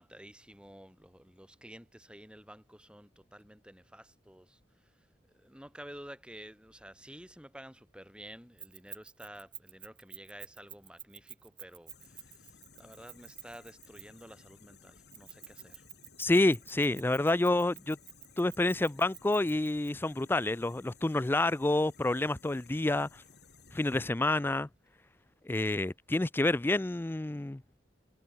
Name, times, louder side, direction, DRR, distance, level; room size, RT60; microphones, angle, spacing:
voice 1, 0.0-5.1 5.3-15.9, right 1 dB, 5° right, 7.3 m, -51 dB
Keys jangling, 8.6-14.3 15.1-19.9, right 9 dB, 25° right, 3.0 m, -49 dB
sound 1, 11.9-24.0, left 5 dB, 65° left, 5.3 m, -58 dB
voice 2, 16.2-18.0 18.4-23.2 23.7-24.7 25.5-27.6, left 2 dB, 10° left, 0.4 m, -28 dB
head